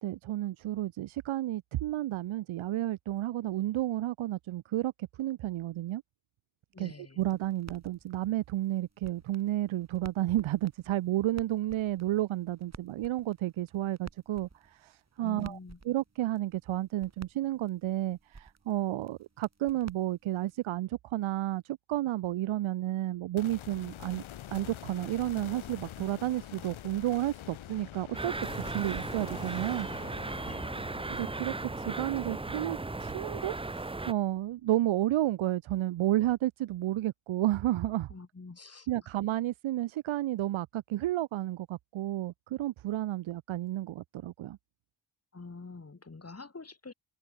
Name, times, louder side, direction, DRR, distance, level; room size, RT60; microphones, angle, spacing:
voice 1, 0.0-6.0 6.8-15.6 15.8-24.2 24.5-28.4 28.7-29.9 31.1-38.1 38.9-44.6, right 15 dB, 80° right, 0.7 m, -31 dB
voice 2, 6.7-7.2 15.2-15.8 30.4-30.6 38.1-38.9 45.3-46.9, left 3 dB, 30° left, 3.5 m, -46 dB
sound 1, 7.2-20.7, right 4 dB, 35° right, 4.2 m, -54 dB
sound 2, 23.4-34.7, left 12 dB, 75° left, 1.1 m, -46 dB
sound 3, 28.1-34.1, right 2 dB, 10° right, 0.7 m, -36 dB
cardioid pair, 65°, 48 cm